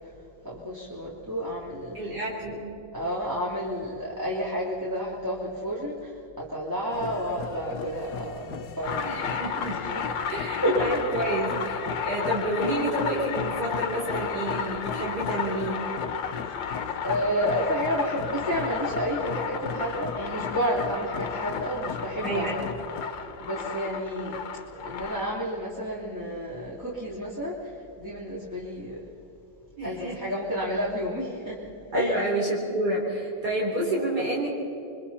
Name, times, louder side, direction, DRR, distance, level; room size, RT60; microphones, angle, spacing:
voice 1, 0.4-2.0 2.9-6.1 6.4-9.3 9.7-10.0 10.6-11.0 17.0-22.8 23.4-24.4 24.8-27.6 28.0-29.0 29.8-31.7 31.9-32.2, equal, 10° right, -6 dB, 3.1 m, -30 dB
voice 2, 1.9-2.7 9.0-9.8 10.3-15.8 22.2-22.6 29.8-30.2 31.9-34.5, right 1 dB, 60° right, -4 dB, 4.2 m, -29 dB
sound 1, 6.9-23.0, left 7 dB, 65° left, 1.4 m, -39 dB
sound 2, 8.8-25.3, left 7 dB, 90° left, 1.9 m, -33 dB
29.0 x 23.5 x 4.2 m, 2.8 s
omnidirectional pair, 2.0 m